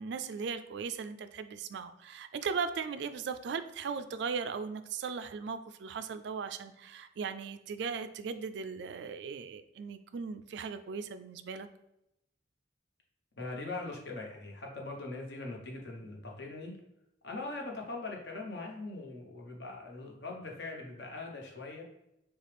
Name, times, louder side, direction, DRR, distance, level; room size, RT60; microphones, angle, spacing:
voice 1, 0.0-11.7, right 5 dB, 60° right, 11 dB, 0.3 m, -38 dB
voice 2, 13.4-16.7 17.2-21.8, left 2 dB, 55° left, -1 dB, 1.1 m, -41 dB
6.4 x 2.3 x 3.4 m, 0.85 s
head